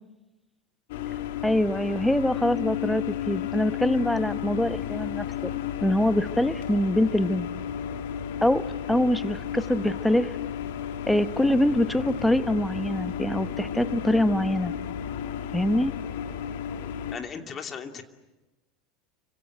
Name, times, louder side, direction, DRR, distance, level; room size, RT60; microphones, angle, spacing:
sound 1, 0.9-17.2, left 9 dB, 65° left, 1.7 m, -33 dB
voice 1, 1.4-5.5 5.8-7.5 8.4-10.4 11.1-14.7 15.5-15.9, left 1 dB, 5° left, 13 dB, 1.1 m, -24 dB
voice 2, 17.1-18.0, left 6 dB, 35° left, 5 dB, 2.7 m, -36 dB
29.5 x 25.5 x 7.9 m, 1.1 s
figure-of-eight pair, 75°, 0 cm